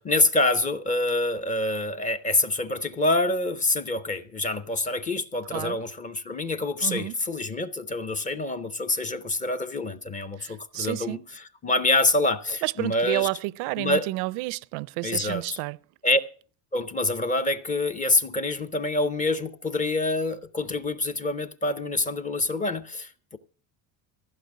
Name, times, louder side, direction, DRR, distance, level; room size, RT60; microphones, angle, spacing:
voice 1, 0.0-13.3 13.8-14.1 15.0-15.6 16.0-16.2 16.7-23.4, left 2 dB, 20° left, 0.5 m, -26 dB
voice 2, 6.8-7.2 10.4-11.2 12.6-15.8, right 21 dB, 80° right, 0.5 m, -30 dB
15.5 x 5.8 x 8.2 m
cardioid pair, 160°, 39 cm